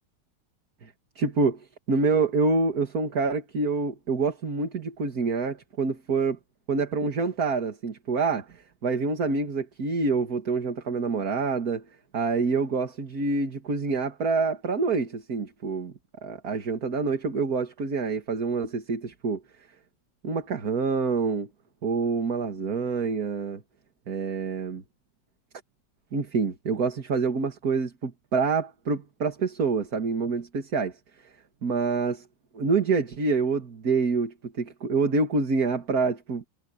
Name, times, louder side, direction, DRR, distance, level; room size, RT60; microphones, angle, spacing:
voice 1, 0.8-6.4 6.7-11.8 12.1-15.9 16.2-19.4 20.2-21.5 21.8-23.6 24.1-24.8 26.1-31.0 31.2-31.3 31.6-32.3 32.5-36.5, right 4 dB, 55° right, 2.4 m, -27 dB
omnidirectional pair, 1.9 m